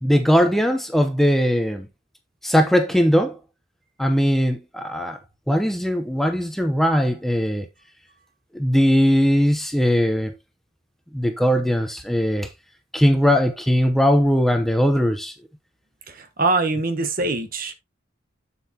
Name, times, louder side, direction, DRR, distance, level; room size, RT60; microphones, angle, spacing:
voice 1, 0.0-1.9 2.4-3.4 4.0-5.2 5.5-7.7 8.5-10.3 11.1-12.5 12.9-15.3, equal, ahead, 0.7 m, -19 dB
voice 2, 16.1-17.7, right 3 dB, 45° right, 1.2 m, -23 dB
7.8 x 7.4 x 2.8 m
head